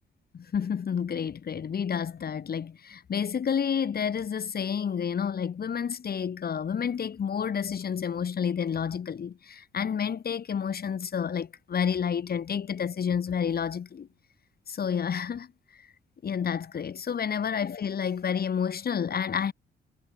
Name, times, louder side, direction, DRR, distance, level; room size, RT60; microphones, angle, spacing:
voice 1, 0.3-14.1 14.7-15.5 15.8-15.9 16.2-19.5, left 7 dB, 50° left, 6.4 m, -30 dB
cardioid pair, 90°, 20 cm